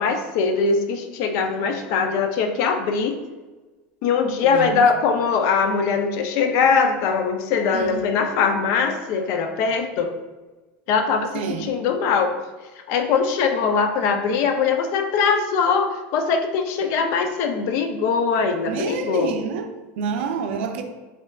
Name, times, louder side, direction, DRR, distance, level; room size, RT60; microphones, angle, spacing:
voice 1, 0.0-3.2 4.0-10.2 10.9-12.3 12.9-19.3, left 5 dB, 55° left, 0.4 m, -21 dB
voice 2, 4.4-4.9 7.7-8.1 11.3-11.7 18.5-20.8, right 6 dB, 85° right, 0.4 m, -28 dB
3.6 x 3.2 x 2.3 m
supercardioid pair, 150°, 6 cm